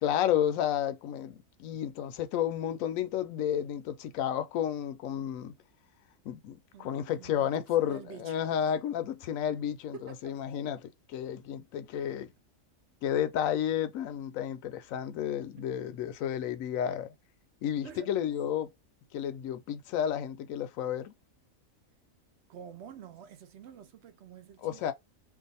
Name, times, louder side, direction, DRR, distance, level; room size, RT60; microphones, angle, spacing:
voice 1, 0.0-5.5 6.2-12.3 13.0-17.1 17.6-18.7 19.1-21.1 24.6-24.9, left 10 dB, 80° left, 1.0 m, -31 dB
voice 2, 6.7-8.4 9.9-10.3 17.8-18.1 22.5-24.9, right 8 dB, 60° right, 0.8 m, -48 dB
2.6 x 2.4 x 3.9 m
omnidirectional pair, 1.4 m